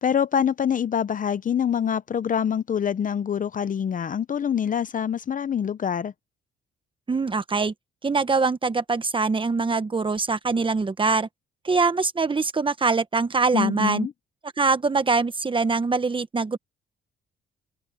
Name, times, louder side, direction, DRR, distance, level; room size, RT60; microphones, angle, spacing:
voice 1, 0.0-6.1 13.5-14.1, left 8 dB, 40° left, 0.7 m, -25 dB
voice 2, 7.1-7.7 8.0-11.3 11.6-14.1 14.6-16.6, right 4 dB, 25° right, 1.2 m, -23 dB
cardioid pair, 90°, 20 cm